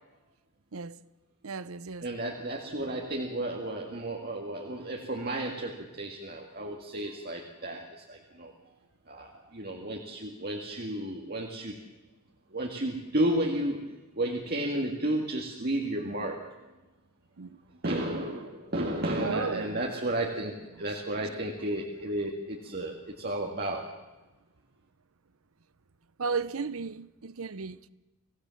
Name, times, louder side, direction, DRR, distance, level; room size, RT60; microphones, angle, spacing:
voice 1, 1.4-2.1 17.4-17.6 19.2-19.8 26.2-27.9, right 5 dB, 70° right, 0.8 m, -34 dB
voice 2, 2.0-8.5 9.1-11.8 12.5-16.6 17.8-24.0, right 1 dB, 45° right, 1.9 m, -32 dB
25.0 x 17.0 x 7.1 m
head